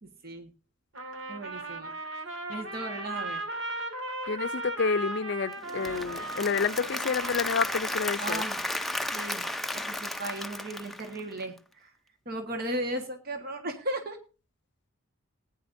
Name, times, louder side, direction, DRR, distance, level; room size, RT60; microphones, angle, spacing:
voice 1, 0.0-0.5 1.3-1.9 2.5-3.4 8.2-8.6 9.1-9.5 9.7-11.9 12.2-14.2, right 1 dB, 50° right, 1.5 m, -36 dB
Trumpet, 0.9-8.1, right 2 dB, 70° right, 2.1 m, -37 dB
voice 2, 4.3-8.4, left 5 dB, 60° left, 0.5 m, -29 dB
Applause / Crowd, 5.5-11.6, left 1 dB, ahead, 0.5 m, -34 dB
18.5 x 9.7 x 2.6 m
head